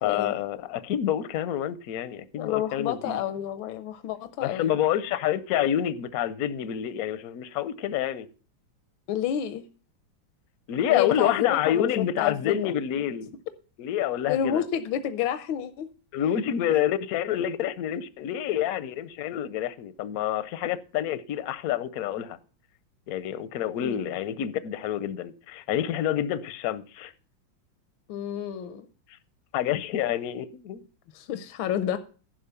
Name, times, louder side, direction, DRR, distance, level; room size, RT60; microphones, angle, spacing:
voice 1, 0.0-3.2 4.4-8.3 10.7-13.3 13.8-14.6 16.1-22.4 23.1-27.1 29.5-30.8, left 10 dB, 65° left, 0.9 m, -28 dB
voice 2, 2.4-4.7 9.1-9.7 10.9-11.9 12.2-12.7 14.3-15.9 23.8-24.0 28.1-28.9 31.1-32.0, left 10 dB, 85° left, 1.4 m, -29 dB
11.5 x 6.1 x 6.9 m
omnidirectional pair, 2.1 m